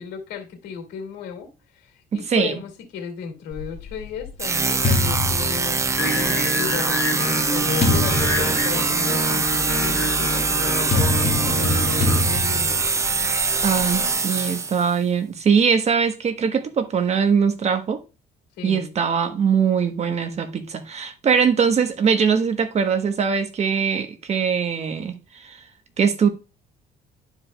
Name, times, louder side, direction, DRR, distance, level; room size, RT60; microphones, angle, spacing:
voice 1, 0.0-13.0 18.6-18.9, left 7 dB, 80° left, 2.5 m, -35 dB
sound 1, 3.5-6.3 7.0-14.1, left 2 dB, 40° left, 1.6 m, -26 dB
sound 2, 4.4-14.9, right 4 dB, 15° right, 0.4 m, -23 dB
Singing, 6.0-12.2, equal, 5° left, 3.1 m, -27 dB
voice 2, 13.6-18.0 18.6-25.6 26.0-26.3, right 6 dB, 40° right, 1.0 m, -21 dB
11.5 x 5.0 x 2.2 m
cardioid pair, 110°, 17 cm